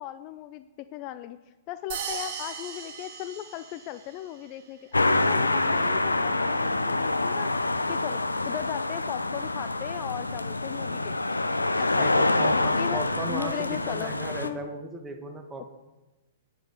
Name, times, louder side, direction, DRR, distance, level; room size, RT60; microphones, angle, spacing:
voice 1, 0.0-1.4 1.7-7.5 7.9-11.5 11.8-12.3 12.7-13.0 13.3-14.1 14.4-14.7 15.6-15.7, left 13 dB, 35° left, 12 dB, 0.4 m, -37 dB
sound 1, 1.9-4.2, right 6 dB, 45° right, 1.6 m, -37 dB
sound 2, 4.9-14.5, left 2 dB, 80° left, 0.7 m, -26 dB
voice 2, 12.0-15.6, right 2 dB, 15° right, 4 dB, 1.5 m, -36 dB
10.0 x 9.1 x 5.2 m, 1.1 s
figure-of-eight pair, 110°, 0 cm